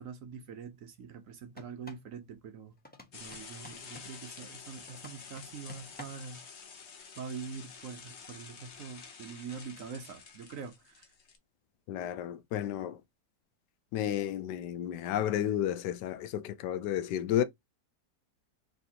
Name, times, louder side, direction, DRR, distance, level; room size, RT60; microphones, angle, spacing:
voice 1, 0.0-2.8 3.1-6.4 7.2-11.0, right 6 dB, 65° right, 0.9 m, -44 dB
sound 1, 1.5-2.1 2.8-4.2 4.9-6.3, left 2 dB, 10° left, 0.4 m, -51 dB
sound 2, 3.1-11.4, left 6 dB, 50° left, 0.9 m, -49 dB
voice 2, 11.9-13.0 13.9-17.4, left 10 dB, 85° left, 1.2 m, -32 dB
4.2 x 3.4 x 2.7 m
omnidirectional pair, 1.8 m